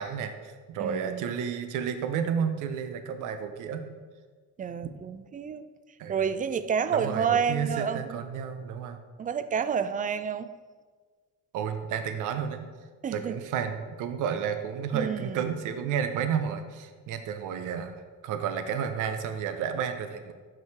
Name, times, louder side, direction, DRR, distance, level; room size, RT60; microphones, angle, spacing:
voice 1, 0.0-4.0 6.0-6.3 6.9-9.0 11.5-12.7 13.1-20.3, right 7 dB, 90° right, 8 dB, 0.6 m, -31 dB
voice 2, 0.8-1.3 4.6-5.6 6.1-8.2 9.2-10.5 13.0-13.4 14.9-15.5, right 7 dB, 30° right, 12 dB, 0.3 m, -29 dB
5.7 x 4.8 x 4.6 m, 1.5 s
cardioid pair, 90°, 30 cm